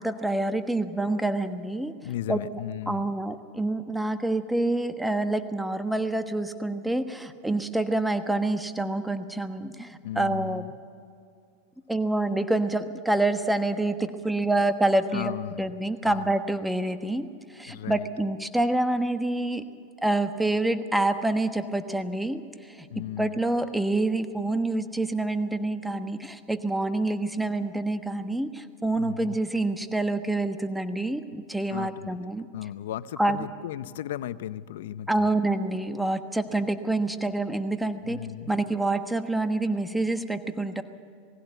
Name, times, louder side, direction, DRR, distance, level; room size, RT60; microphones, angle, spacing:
voice 1, 0.0-1.9 2.3-2.4 2.9-10.6 11.9-19.7 20.0-32.5 33.2-33.4 35.1-38.2 38.5-40.8, right 2 dB, 5° right, 9 dB, 1.2 m, -27 dB
voice 2, 2.0-3.1 10.0-10.7 14.6-14.7 15.1-15.7 16.0-16.3 17.7-18.1 22.9-23.4 29.0-29.4 31.7-32.2 32.5-35.3 36.5-36.6 37.9-38.6, left 12 dB, 75° left, 16 dB, 0.6 m, -36 dB
20.5 x 16.0 x 8.2 m, 2.3 s
hypercardioid pair, 100°, 0 cm